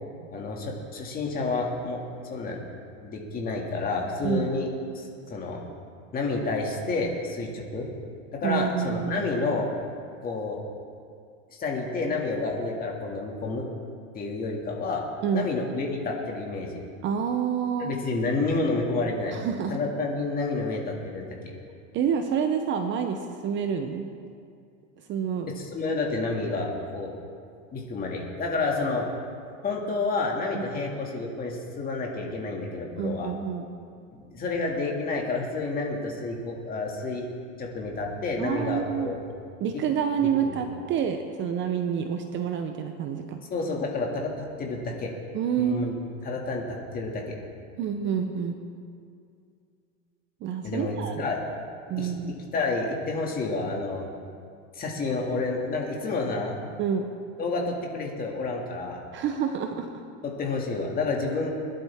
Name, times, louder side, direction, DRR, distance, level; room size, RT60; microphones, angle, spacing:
voice 1, 0.3-2.0 2.3-2.6 3.0-5.6 6.1-7.9 8.4-9.7 10.2-10.6 11.6-13.7 14.1-15.0 15.3-16.8 17.8-19.3 19.7-21.5 25.6-27.1 27.7-29.1 29.6-33.3 34.1-37.3 37.6-39.2 40.4-40.5 43.5-45.1 45.6-46.0 46.2-47.4 50.6-51.4 52.0-52.1 52.5-54.0 54.7-56.6 57.4-59.0 60.2-61.5, left 3 dB, 20° left, -1 dB, 2.2 m, -29 dB
voice 2, 8.4-9.2 15.2-15.5 17.0-18.0 19.3-19.8 21.9-24.1 25.1-25.5 30.5-30.8 33.0-33.7 38.4-39.1 39.6-43.4 45.3-46.0 47.8-48.5 50.4-51.2 51.9-52.3 56.8-57.1 59.1-59.9, right 7 dB, 30° right, 6 dB, 0.8 m, -28 dB
21.5 x 11.5 x 3.6 m, 2.3 s
supercardioid pair, 140°, 40 cm